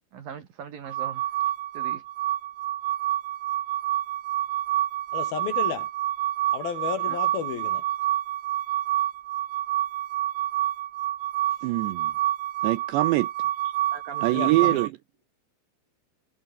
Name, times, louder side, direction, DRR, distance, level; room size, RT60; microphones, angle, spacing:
voice 1, 0.1-1.3 1.7-2.0 7.1-7.2 13.6-14.6, right 7 dB, 50° right, 3.4 m, -41 dB
sound 1, 0.9-14.9, right 13 dB, 70° right, 3.6 m, -28 dB
voice 2, 5.1-5.9 6.5-7.8 14.3-14.8, left 8 dB, 55° left, 3.4 m, -32 dB
voice 3, 11.6-12.1 12.6-13.3 14.2-14.9, right 18 dB, 85° right, 2.5 m, -24 dB
omnidirectional pair, 5.9 m